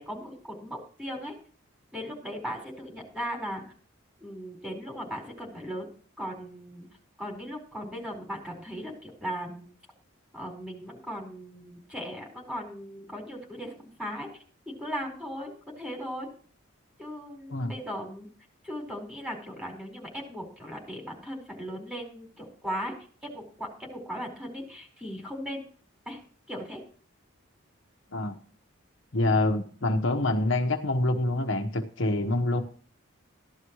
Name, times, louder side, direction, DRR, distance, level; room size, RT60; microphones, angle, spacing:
voice 1, 0.0-1.3 1.9-3.6 4.2-5.9 6.2-6.9 7.2-9.6 10.3-13.7 14.0-14.3 14.7-16.3 17.0-18.3 18.6-22.9 23.3-25.6 26.1-26.2 26.5-26.8, equal, 5° right, -1 dB, 4.6 m, -37 dB
voice 2, 29.1-32.6, left 2 dB, 65° left, 4 dB, 1.2 m, -26 dB
15.0 x 11.5 x 3.1 m, 0.43 s
head